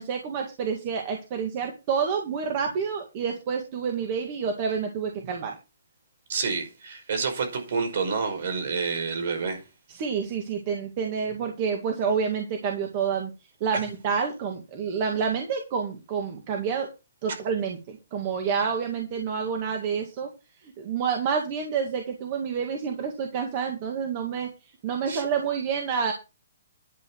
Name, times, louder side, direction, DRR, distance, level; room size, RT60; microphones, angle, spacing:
voice 1, 0.0-5.6 9.9-13.3 13.6-16.9 17.2-20.3 20.6-24.5 24.8-26.1, right 6 dB, 25° right, 2.0 m, -28 dB
voice 2, 6.3-9.6 25.1-25.2, right 5 dB, 50° right, 5.2 m, -28 dB
11.5 x 8.6 x 4.7 m
hypercardioid pair, 175°, 0 cm